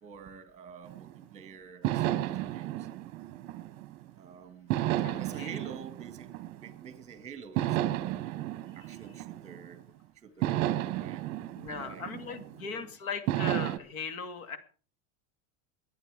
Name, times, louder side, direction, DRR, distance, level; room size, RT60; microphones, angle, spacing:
voice 1, 0.0-2.9 4.2-4.8 5.2-8.3 8.7-9.9 10.2-11.2 11.7-12.9, right 6 dB, 15° right, 12 dB, 1.7 m, -48 dB
sound 1, 0.9-1.2 1.8-4.1 4.7-7.0 7.6-9.8 10.4-12.7 13.3-13.8, right 14 dB, 35° right, 0.9 m, -32 dB
voice 2, 4.9-5.6 11.6-14.6, left 5 dB, 90° left, 11 dB, 2.4 m, -39 dB
23.0 x 8.9 x 4.9 m, 0.40 s
supercardioid pair, 170°, 41 cm